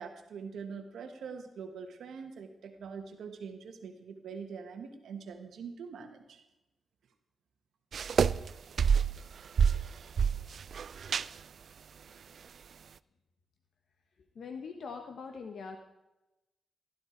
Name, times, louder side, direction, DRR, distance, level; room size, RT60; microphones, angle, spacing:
voice 1, 0.0-6.4, right 5 dB, 80° right, 5 dB, 1.4 m, -44 dB
sound 1, 7.9-8.5 8.8-9.3 9.6-11.3, right 7 dB, 50° right, 0.4 m, -27 dB
voice 2, 14.3-15.8, left 5 dB, 60° left, 5 dB, 1.2 m, -42 dB
16.0 x 12.0 x 4.6 m, 0.98 s
wide cardioid pair, 150°, 0 cm